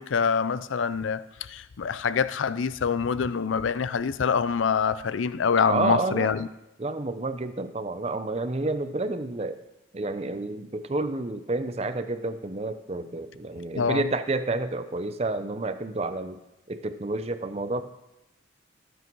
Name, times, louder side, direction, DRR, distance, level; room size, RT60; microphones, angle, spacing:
voice 1, 0.0-6.5 13.7-14.0, left 6 dB, 85° left, 0.5 m, -25 dB
voice 2, 5.7-6.3 6.8-9.6 9.9-16.4 16.7-17.8, right 2 dB, 35° right, 0.7 m, -29 dB
18.5 x 8.2 x 4.6 m
head